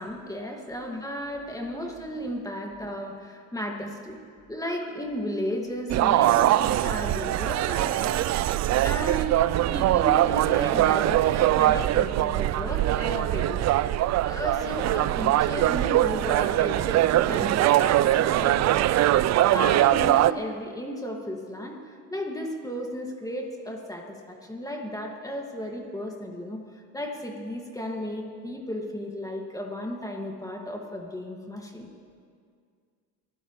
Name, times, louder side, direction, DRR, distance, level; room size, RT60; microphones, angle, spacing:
voice 1, 0.0-4.2 4.5-8.2 8.8-9.4 9.7-13.7 14.2-18.8 19.5-31.9, equal, 10° left, 0 dB, 2.1 m, -34 dB
sound 1, 5.9-20.3, right 14 dB, 45° right, 0.4 m, -22 dB
23.5 x 16.0 x 3.2 m, 2.1 s
supercardioid pair, 90°, 38 cm